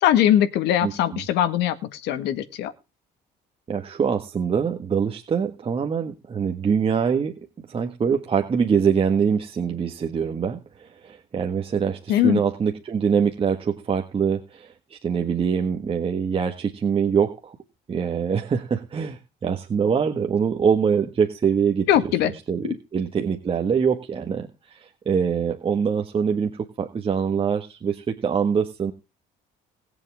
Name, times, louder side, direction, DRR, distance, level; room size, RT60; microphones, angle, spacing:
voice 1, 0.0-2.7 12.1-12.4 21.9-22.3 22.6-22.7, left 11 dB, 85° left, 11 dB, 1.7 m, -21 dB
voice 2, 0.8-1.2 3.7-7.3 7.7-17.5 17.9-21.9 22.5-28.9, right 6 dB, 35° right, 4 dB, 1.6 m, -24 dB
20.5 x 7.6 x 3.6 m, 0.29 s
cardioid pair, 110°, 17 cm